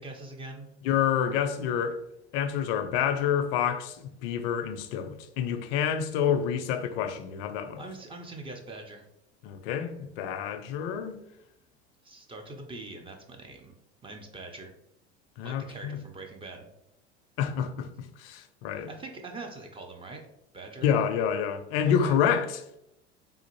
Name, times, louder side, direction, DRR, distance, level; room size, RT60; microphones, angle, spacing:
voice 1, 0.0-0.7 7.8-9.1 12.0-13.7 14.0-14.7 15.4-16.7 18.7-20.2 20.5-20.9 21.9-22.2, right 2 dB, 15° right, 0.5 m, -43 dB
voice 2, 0.8-2.0 2.3-7.8 9.4-11.2 15.4-16.0 17.4-18.9 20.8-22.8, left 8 dB, 60° left, 0.5 m, -28 dB
3.4 x 2.5 x 2.9 m
figure-of-eight pair, 75°, 34 cm